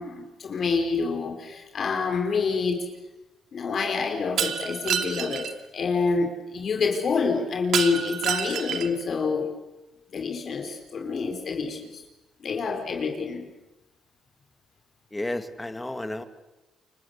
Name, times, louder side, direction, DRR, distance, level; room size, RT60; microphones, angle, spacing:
voice 1, 0.0-2.8 3.5-5.5 5.7-9.5 10.1-12.0 12.4-13.5, left 4 dB, 50° left, 3 dB, 4.6 m, -27 dB
Shatter, 4.4-5.5 7.7-9.0, right 8 dB, 70° right, 2.7 m, -28 dB
voice 2, 15.1-16.3, left 1 dB, 15° left, 10 dB, 2.2 m, -32 dB
29.0 x 24.5 x 8.2 m, 1.0 s
cardioid pair, 90°, 0 cm